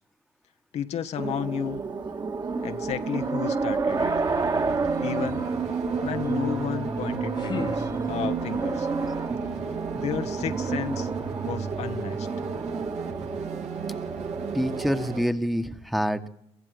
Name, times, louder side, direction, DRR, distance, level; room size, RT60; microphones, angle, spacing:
voice 1, 0.7-1.8 2.6-4.1 5.0-5.4 6.0-8.9 9.9-11.1 11.4-12.3, left 9 dB, 75° left, 8 dB, 1.1 m, -32 dB
sound 1, 1.2-15.3, right 4 dB, 40° right, 2.1 m, -29 dB
sound 2, 3.9-15.3, right 6 dB, 80° right, 1.8 m, -38 dB
sound 3, 6.9-8.5, left 5 dB, 40° left, 1.3 m, -38 dB
voice 2, 14.5-16.3, equal, ahead, 8 dB, 1.4 m, -26 dB
24.0 x 15.0 x 8.0 m, 0.77 s
cardioid pair, 80°, 11 cm